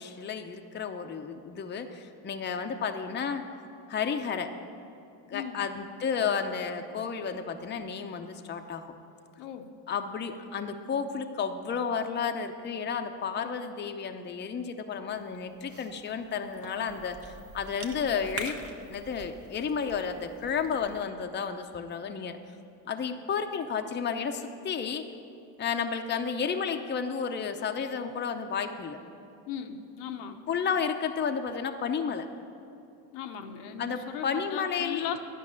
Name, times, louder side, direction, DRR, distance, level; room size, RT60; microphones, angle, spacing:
voice 1, 0.0-3.4 3.9-4.5 5.3-8.9 9.9-18.6 18.9-22.4 22.9-25.1 25.6-29.0 30.5-32.3 33.8-35.0, left 6 dB, 20° left, 6 dB, 0.6 m, -32 dB
voice 2, 9.4-9.7 29.5-30.4 33.1-35.2, left 8 dB, 80° left, 6 dB, 0.9 m, -37 dB
Cough / Chewing mastication, 15.1-21.1, right 4 dB, 30° right, 1.0 m, -46 dB
10.5 x 5.4 x 8.4 m, 2.7 s
supercardioid pair, 85°, 49 cm